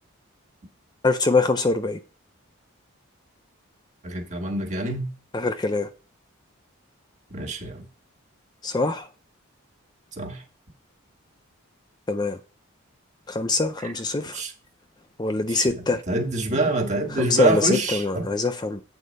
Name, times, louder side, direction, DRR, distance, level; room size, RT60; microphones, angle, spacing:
voice 1, 1.0-2.0 5.3-5.9 8.6-9.1 12.1-12.4 13.3-14.4 15.2-16.0 17.1-18.8, left 3 dB, 20° left, 0.4 m, -23 dB
voice 2, 4.0-5.1 7.3-7.8 10.2-10.4 14.3-14.5 15.5-15.6 16.1-18.2, right 2 dB, 35° right, 1.6 m, -26 dB
8.4 x 4.3 x 5.2 m
head